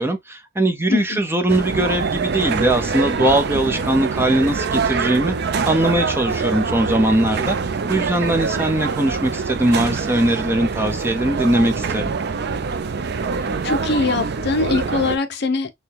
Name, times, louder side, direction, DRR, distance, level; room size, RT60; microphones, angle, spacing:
voice 1, 0.0-5.3 5.7-7.6 7.9-12.1, right 1 dB, 10° right, 0.7 m, -20 dB
sound 1, 1.5-15.2, right 5 dB, 55° right, 0.5 m, -24 dB
voice 2, 13.6-15.7, left 3 dB, 55° left, 0.7 m, -22 dB
6.7 x 2.3 x 3.4 m
head